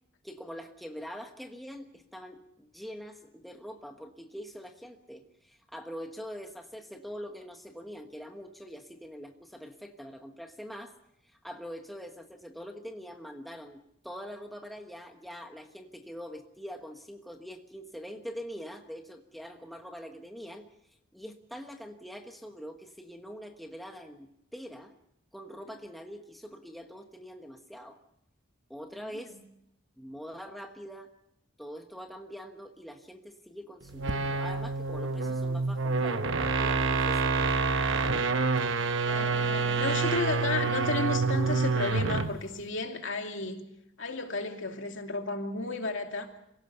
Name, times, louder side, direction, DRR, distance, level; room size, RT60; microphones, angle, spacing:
voice 1, 0.2-10.9 11.2-20.7 21.1-24.9 25.3-28.0 28.7-29.4 30.0-31.1 31.6-38.2, equal, ahead, 1.2 m, -44 dB
sound 1, 33.9-42.4, right 4 dB, 65° right, 1.0 m, -27 dB
voice 2, 39.0-43.7 44.0-46.3, left 3 dB, 65° left, 2.6 m, -33 dB
26.5 x 17.5 x 6.8 m
head